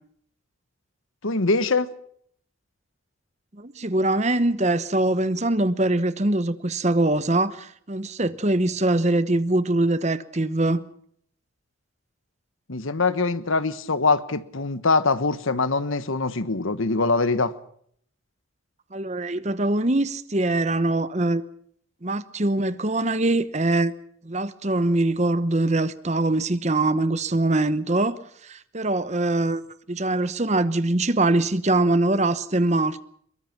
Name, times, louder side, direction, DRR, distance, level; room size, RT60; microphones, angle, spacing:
voice 1, 1.2-1.9 12.7-17.5, left 3 dB, 80° left, 1.3 m, -23 dB
voice 2, 3.5-10.8 18.9-21.4 22.0-23.9 24.2-29.6 29.9-33.0, right 2 dB, 35° right, 1.0 m, -23 dB
23.0 x 22.5 x 6.0 m
head